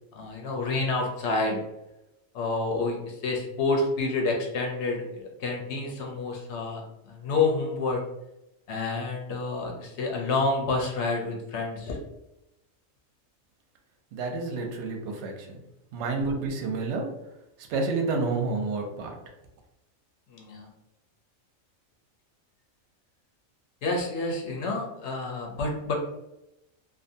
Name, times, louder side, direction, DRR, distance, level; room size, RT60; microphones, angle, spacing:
voice 1, 0.1-1.6 2.3-6.8 7.1-8.0 8.7-12.0 20.3-20.7 23.8-25.9, left 3 dB, 65° left, 0 dB, 0.8 m, -28 dB
voice 2, 14.1-15.3 15.9-17.1 17.7-19.1, right 3 dB, 65° right, 3 dB, 0.8 m, -29 dB
2.6 x 2.1 x 2.6 m, 0.88 s
omnidirectional pair, 1.4 m